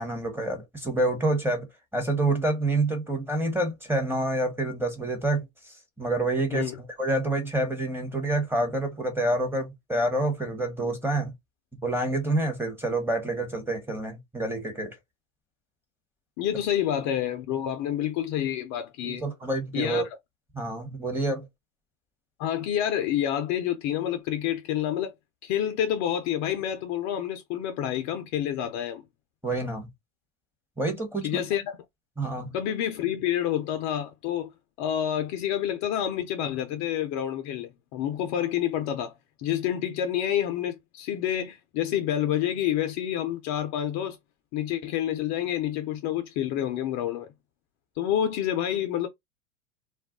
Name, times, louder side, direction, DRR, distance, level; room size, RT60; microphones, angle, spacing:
voice 1, 0.0-1.7 1.9-5.5 6.0-11.3 11.8-15.0 19.0-20.0 20.5-21.4 29.4-29.9 30.8-31.4 32.2-32.5, right 2 dB, 5° right, 0.8 m, -27 dB
voice 2, 16.4-19.2 19.7-20.1 22.4-25.1 25.4-29.0 31.2-31.8 32.5-34.5 34.8-44.2 44.5-47.3 48.0-49.1, left 10 dB, 45° left, 0.5 m, -28 dB
2.3 x 2.2 x 3.5 m
hypercardioid pair, 110°, 42 cm